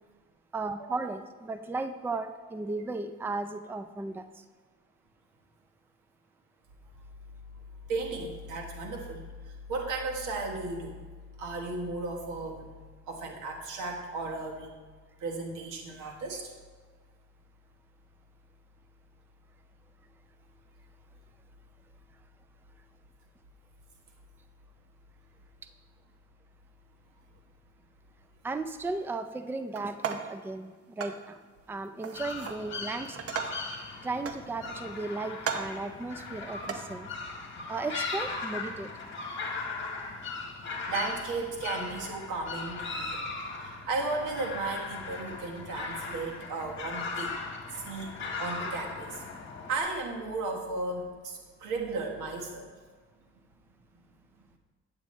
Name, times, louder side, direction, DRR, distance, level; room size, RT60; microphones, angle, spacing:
voice 1, 0.5-4.4 28.4-31.4 31.7-33.3 34.0-37.1 37.7-38.9, right 3 dB, 5° right, 10 dB, 0.4 m, -35 dB
voice 2, 7.9-9.3 9.7-10.9 11.4-12.8 13.1-14.7 15.2-16.4 40.9-43.2 43.6-47.3 47.7-48.1 48.4-49.2 49.7-52.7, right 3 dB, 90° right, 1 dB, 1.5 m, -35 dB
sound 1, 29.8-30.4 31.0-31.2 32.0-32.6 33.0-33.7 34.3-34.9 35.4-35.8 36.6-36.8, right 6 dB, 50° right, 0.8 m, -36 dB
sound 2, 32.1-49.8, left 4 dB, 40° left, 1.5 m, -38 dB
8.8 x 8.6 x 3.1 m, 1.5 s
cardioid pair, 90°, 30 cm